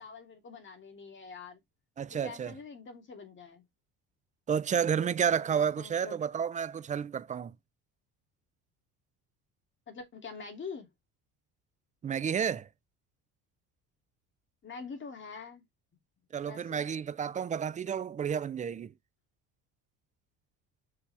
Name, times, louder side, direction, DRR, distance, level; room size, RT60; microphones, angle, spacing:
voice 1, 0.0-1.6 2.1-3.6 5.5-6.2 9.9-10.9 14.6-15.6 16.5-16.8, left 5 dB, 30° left, 2.5 m, -45 dB
voice 2, 2.0-2.5 4.5-7.5 12.0-12.7 16.3-18.9, right 7 dB, 20° right, 0.3 m, -31 dB
6.8 x 4.9 x 3.3 m
cardioid pair, 135°, 37 cm